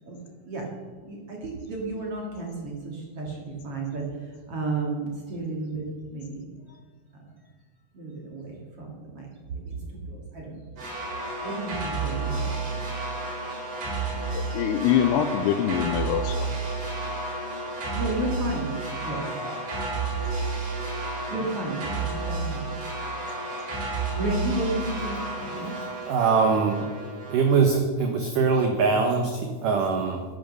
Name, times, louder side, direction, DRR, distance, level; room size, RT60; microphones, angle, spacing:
voice 1, 1.0-5.8 6.1-6.5 7.1-7.2 7.9-10.8 11.4-12.6 17.7-19.5 21.3-22.8 24.2-26.1, right 2 dB, 40° right, -1 dB, 2.4 m, -33 dB
sound 1, 10.8-27.6, right 3 dB, 60° right, 6.1 m, -31 dB
voice 2, 14.3-16.6, left 10 dB, 80° left, 8 dB, 2.5 m, -24 dB
voice 3, 26.1-26.9 27.3-30.2, right 5 dB, 80° right, 4 dB, 1.8 m, -22 dB
11.0 x 10.5 x 6.6 m, 1.4 s
omnidirectional pair, 5.2 m